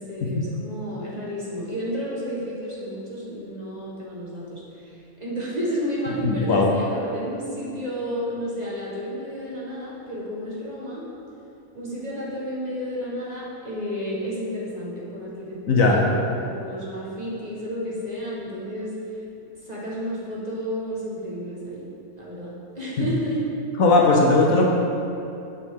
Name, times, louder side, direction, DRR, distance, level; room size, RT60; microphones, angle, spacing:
voice 1, 0.0-11.1 11.7-19.0 19.6-21.9 22.2-23.4, equal, 30° right, -6 dB, 1.4 m, -31 dB
voice 2, 6.2-6.7 15.7-16.0 23.0-23.1 23.8-24.6, left 3 dB, 65° left, -1 dB, 1.2 m, -18 dB
9.3 x 6.0 x 3.6 m, 2.7 s
omnidirectional pair, 1.6 m